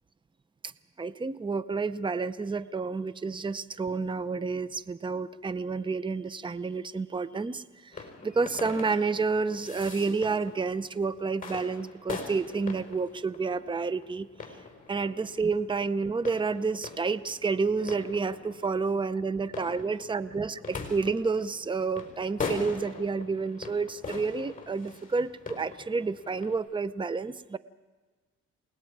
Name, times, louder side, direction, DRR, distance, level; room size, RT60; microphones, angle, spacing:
voice 1, 1.0-7.6 8.2-14.3 14.9-27.6, right 4 dB, 15° right, 15 dB, 0.7 m, -30 dB
sound 1, 7.9-26.6, left 4 dB, 25° left, 3.7 m, -42 dB
28.5 x 19.5 x 4.7 m, 1.3 s
cardioid pair, 90°, 30 cm